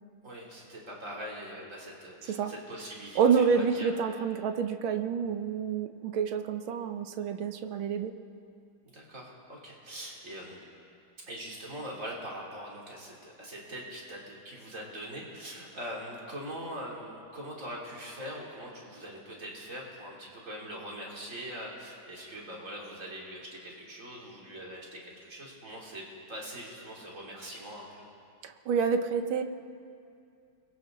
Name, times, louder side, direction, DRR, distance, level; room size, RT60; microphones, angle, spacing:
voice 1, 0.2-3.9 8.9-10.6 11.2-28.0, equal, 35° right, -4 dB, 3.9 m, -42 dB
voice 2, 3.1-8.1 28.4-29.4, right 6 dB, 75° right, 7 dB, 1.8 m, -28 dB
29.5 x 22.5 x 4.0 m, 2.5 s
omnidirectional pair, 2.3 m